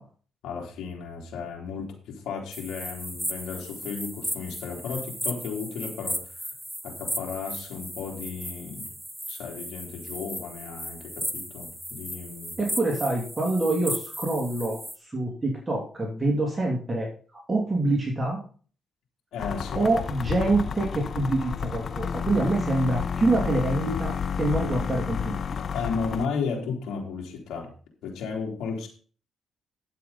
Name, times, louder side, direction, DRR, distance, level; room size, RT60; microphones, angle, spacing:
voice 1, 0.4-6.2 6.8-8.9 9.3-12.5 19.3-19.8 25.7-27.7 28.0-28.9, left 5 dB, 80° left, -2 dB, 3.4 m, -34 dB
sound 1, 2.5-15.0, equal, ahead, 1.1 m, -36 dB
voice 2, 12.6-17.1 17.5-18.4 19.7-25.4, right 2 dB, 20° right, -1 dB, 3.0 m, -26 dB
sound 2, 19.4-26.3, left 6 dB, 50° left, 0.5 m, -31 dB
11.0 x 7.8 x 4.2 m, 0.40 s
cardioid pair, 90°, 0 cm